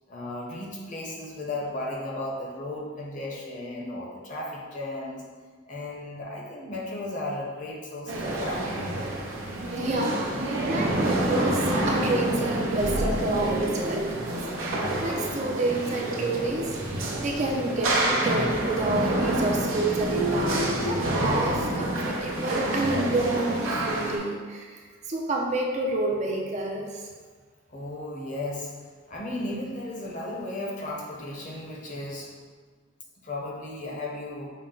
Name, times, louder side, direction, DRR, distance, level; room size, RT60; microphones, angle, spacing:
voice 1, 0.1-5.2 5.7-8.9 27.7-32.5 33.2-34.5, left 1 dB, 40° left, -3 dB, 0.7 m, -35 dB
sound 1, 8.1-24.2, right 1 dB, 85° right, 0.7 m, -27 dB
voice 2, 9.7-14.2 14.6-16.8 17.2-27.1, right 2 dB, 35° right, 0 dB, 0.4 m, -29 dB
5.6 x 2.1 x 3.7 m, 1.5 s
head